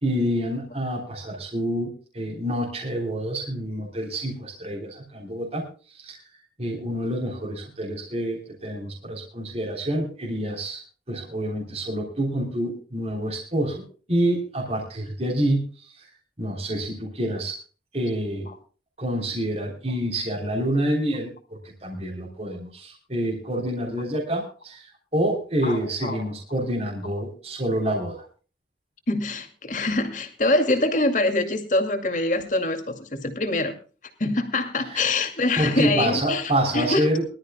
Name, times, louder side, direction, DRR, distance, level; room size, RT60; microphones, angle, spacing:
voice 1, 0.0-5.6 5.9-6.2 6.6-10.8 11.1-13.8 14.1-16.1 16.4-17.6 17.9-18.5 19.0-28.2 34.9-35.0 35.6-37.2, right 1 dB, 35° right, -1 dB, 3.5 m, -27 dB
voice 2, 25.6-26.3 29.1-33.7 34.2-37.1, left 2 dB, 45° left, 7 dB, 2.4 m, -24 dB
23.5 x 13.0 x 2.2 m, 0.37 s
head